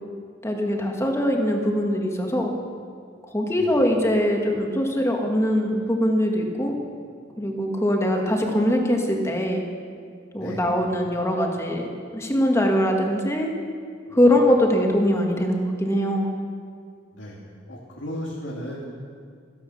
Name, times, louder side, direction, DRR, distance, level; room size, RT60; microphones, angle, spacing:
voice 1, 0.4-2.5 3.3-6.8 7.4-9.6 10.3-13.5 14.1-16.3, equal, 15° left, 1 dB, 1.6 m, -22 dB
voice 2, 6.6-7.1 10.4-10.7 14.1-14.2 17.1-17.4 17.7-18.8, equal, 85° left, -5 dB, 2.5 m, -36 dB
15.0 x 10.5 x 7.1 m, 2.1 s
head